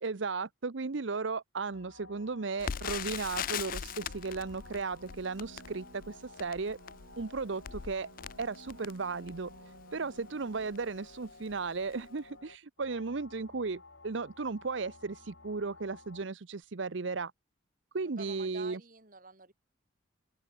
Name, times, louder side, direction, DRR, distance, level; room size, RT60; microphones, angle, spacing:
voice 1, 0.0-6.8 7.2-8.1 8.4-9.5 9.9-17.3 17.9-18.8, right 4 dB, 70° right, 0.8 m, -35 dB
sound 1, 1.7-16.2, left 3 dB, 70° left, 4.9 m, -55 dB
Crackle, 2.6-9.6 10.2-10.3 10.6-10.8 11.4-11.7 11.9-12.0, left 8 dB, 45° left, 0.4 m, -40 dB
sound 2, 2.7-11.3 16.6-16.7, right 2 dB, 85° right, 2.8 m, -57 dB
voice 2, 18.2-19.5, right 3 dB, 45° right, 3.6 m, -49 dB
open air
head